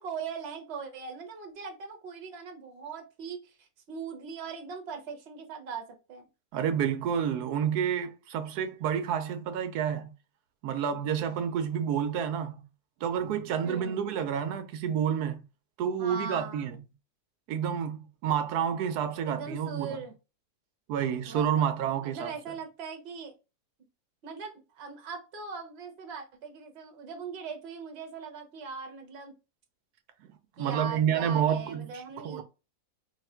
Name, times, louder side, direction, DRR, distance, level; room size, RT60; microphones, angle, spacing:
voice 1, 0.0-6.2 13.6-14.0 16.0-16.7 19.3-20.1 21.3-21.7 22.0-23.3 24.2-29.3 30.6-32.4, right 5 dB, 50° right, 1.0 m, -40 dB
voice 2, 6.5-10.1 10.6-12.7 13.0-15.4 15.8-16.8 17.5-19.9 20.9-22.3 30.6-31.9 32.2-32.4, right 8 dB, 85° right, 1.1 m, -29 dB
3.5 x 2.4 x 4.2 m
omnidirectional pair, 1.6 m